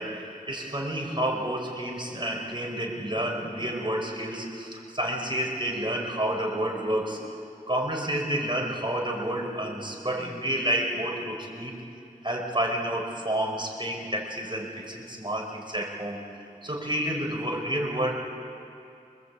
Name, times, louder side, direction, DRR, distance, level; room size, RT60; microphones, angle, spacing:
voice 1, 0.0-7.3 7.7-11.7 12.2-16.2 16.6-18.1, right 1 dB, 35° right, 1 dB, 4.9 m, -30 dB
28.5 x 25.0 x 8.4 m, 2.6 s
wide cardioid pair, 45°, 15 cm